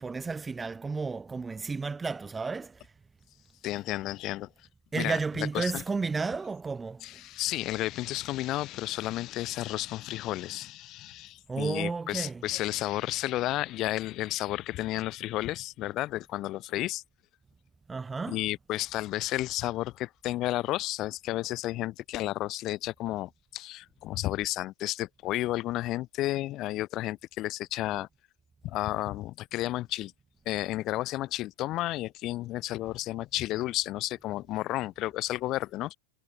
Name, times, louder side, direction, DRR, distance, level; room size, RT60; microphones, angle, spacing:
voice 1, 0.0-2.9 4.9-7.2 11.5-12.4 17.9-18.4, right 4 dB, 15° right, 2.3 m, -32 dB
voice 2, 3.6-4.5 4.9-5.8 7.0-17.0 18.3-28.1 28.6-30.1 30.5-36.0, left 16 dB, 35° left, 5.2 m, -32 dB
figure-of-eight pair, 90°, 0 cm